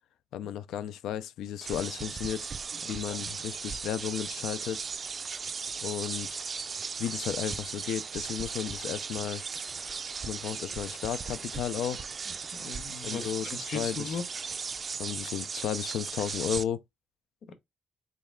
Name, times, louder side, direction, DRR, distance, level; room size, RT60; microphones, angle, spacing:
voice 1, 0.3-2.5 2.9-4.8 5.8-6.4 7.0-9.4 10.2-12.1 13.0-14.2 15.0-16.8, left 10 dB, 80° left, 0.4 m, -34 dB
sound 1, 1.6-16.6, right 5 dB, 40° right, 0.4 m, -37 dB
voice 2, 12.6-14.2 17.5-17.6, left 5 dB, 65° left, 1.0 m, -38 dB
3.9 x 3.2 x 3.5 m
cardioid pair, 90°, 0 cm